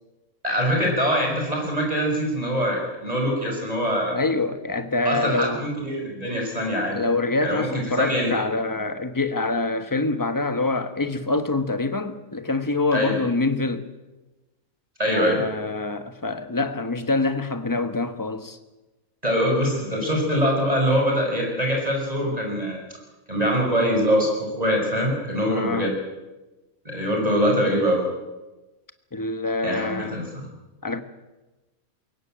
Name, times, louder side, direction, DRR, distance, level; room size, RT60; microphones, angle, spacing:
voice 1, 0.4-4.2 5.1-7.0 7.4-7.7 8.0-8.4 12.9-13.2 15.0-15.4 19.2-22.8 23.3-25.9 26.8-28.1 29.6-30.5, equal, 25° right, 5.6 m, -23 dB
voice 2, 4.1-5.7 6.9-13.9 15.1-18.6 25.5-25.9 29.1-30.2 30.8-31.0, left 3 dB, 15° left, 1.3 m, -25 dB
22.0 x 17.5 x 9.1 m
omnidirectional pair, 1.5 m